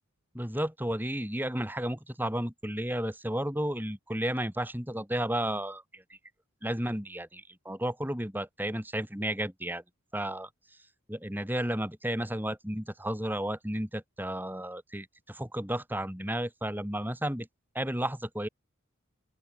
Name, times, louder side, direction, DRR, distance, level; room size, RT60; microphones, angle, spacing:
voice 1, 0.3-6.0 6.6-9.8 10.1-10.5 11.1-17.5 17.7-18.5, right 1 dB, 10° right, 5.4 m, -33 dB
open air
head